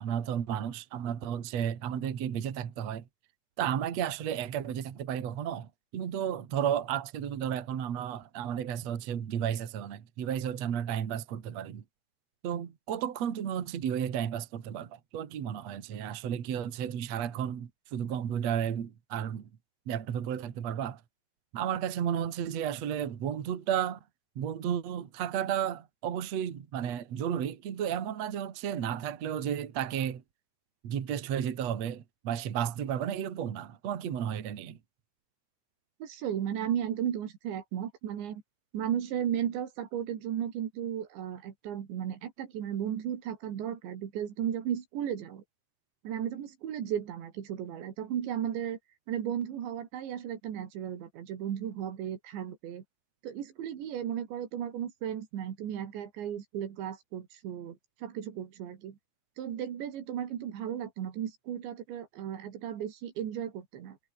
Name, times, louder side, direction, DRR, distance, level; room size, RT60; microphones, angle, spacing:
voice 1, 0.0-3.0 3.6-11.8 12.4-19.5 19.9-21.0 21.5-24.0 24.4-30.2 30.8-34.8, right 9 dB, 45° right, 2.6 m, -33 dB
voice 2, 36.0-38.4 38.7-45.4 46.0-48.8 49.1-52.8 53.2-59.0 59.4-64.0, right 9 dB, 75° right, 4.9 m, -35 dB
omnidirectional pair, 5.2 m